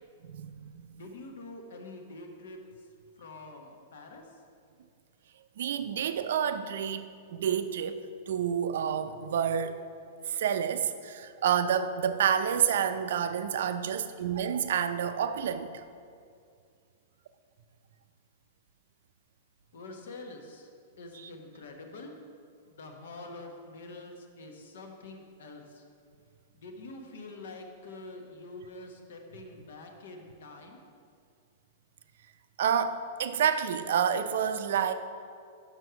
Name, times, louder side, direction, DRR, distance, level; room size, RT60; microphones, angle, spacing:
voice 1, 0.3-1.0 5.6-9.8 10.3-15.7 21.1-21.3 32.6-34.9, right 8 dB, 65° right, 10 dB, 0.4 m, -29 dB
voice 2, 0.9-2.6 3.2-4.2 19.7-20.7 21.0-22.1 22.7-25.8 26.5-30.9, left 2 dB, 70° left, 3 dB, 1.1 m, -46 dB
6.1 x 5.4 x 5.7 m, 2.3 s
supercardioid pair, 175°, 0 cm